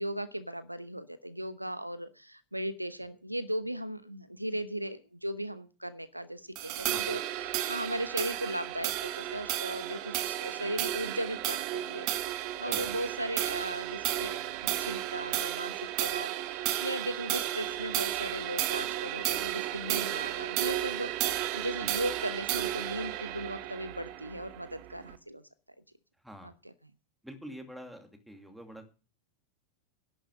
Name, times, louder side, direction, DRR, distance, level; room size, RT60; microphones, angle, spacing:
voice 1, 0.0-25.4 26.4-26.7, right 1 dB, 85° right, 13 dB, 0.9 m, -37 dB
sound 1, 6.6-25.2, right 14 dB, 45° right, 1.3 m, -33 dB
voice 2, 27.2-28.9, equal, ahead, 5 dB, 2.5 m, -46 dB
11.5 x 9.4 x 6.5 m, 0.33 s
figure-of-eight pair, 90°, 0 cm